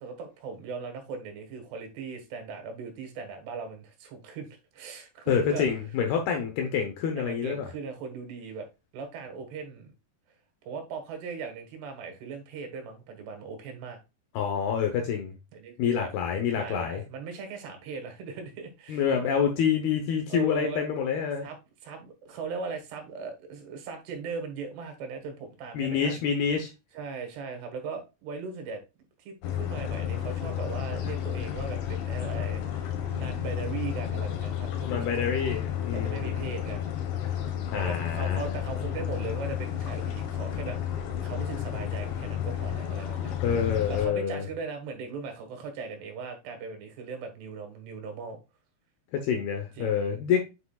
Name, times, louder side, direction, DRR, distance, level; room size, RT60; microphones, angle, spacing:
voice 1, 0.0-4.5 4.7-5.7 7.2-8.7 8.9-9.9 10.6-14.0 15.5-16.1 16.6-19.3 20.3-20.9 21.4-21.6 21.8-26.2 26.9-28.8 29.2-35.1 35.9-36.9 37.7-43.3 43.9-48.4 49.8-50.4, right 5 dB, 75° right, 3.6 m, -39 dB
voice 2, 5.3-7.7 14.4-15.3 15.8-17.0 18.9-21.5 25.7-26.7 34.9-36.3 37.7-38.5 43.4-44.5 49.1-50.4, left 7 dB, 75° left, 2.7 m, -27 dB
sound 1, 29.4-44.1, left 10 dB, 90° left, 3.6 m, -32 dB
8.0 x 6.1 x 2.4 m
omnidirectional pair, 4.9 m